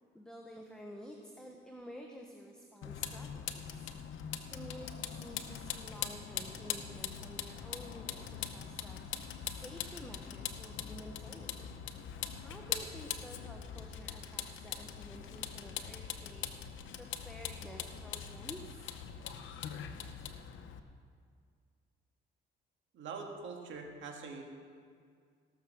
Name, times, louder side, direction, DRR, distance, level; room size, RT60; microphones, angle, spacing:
voice 1, 0.1-11.7 12.4-16.5 17.0-19.3, equal, 5° left, 0 dB, 1.2 m, -51 dB
Vehicle, 2.8-20.8, left 8 dB, 80° left, 0.8 m, -42 dB
voice 2, 22.9-24.4, right 4 dB, 75° right, 2 dB, 1.8 m, -43 dB
17.0 x 6.7 x 6.1 m, 2.1 s
cardioid pair, 90°, 20 cm